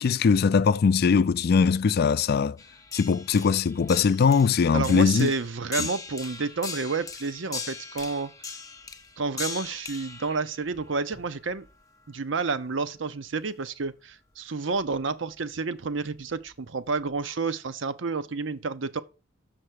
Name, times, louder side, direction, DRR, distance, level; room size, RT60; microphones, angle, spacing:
voice 1, 0.0-2.6 2.9-5.3 5.8-5.9, left 5 dB, 55° left, 0.4 m, -21 dB
sound 1, 2.6-11.7 13.8-13.9 14.8-15.0 16.1-16.5 17.2-17.3, left 5 dB, 20° left, 0.7 m, -39 dB
voice 2, 4.7-8.3 9.2-11.7 12.1-19.0, right 4 dB, 80° right, 0.7 m, -30 dB
6.7 x 5.8 x 6.4 m
head